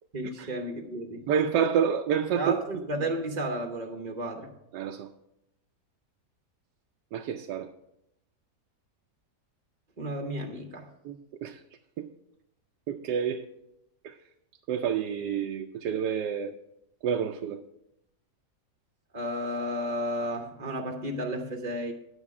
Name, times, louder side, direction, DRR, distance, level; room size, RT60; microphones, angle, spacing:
voice 1, 0.1-1.3 2.3-4.5 10.0-10.9 19.1-21.9, equal, 35° right, 4 dB, 0.7 m, -33 dB
voice 2, 1.3-2.6 4.7-5.1 7.1-7.7 11.1-11.6 12.0-12.1 12.9-13.5 14.0-14.1 14.7-16.5 17.0-17.6, right 7 dB, 85° right, 5 dB, 1.2 m, -28 dB
9.8 x 8.1 x 4.7 m, 0.84 s
omnidirectional pair, 1.7 m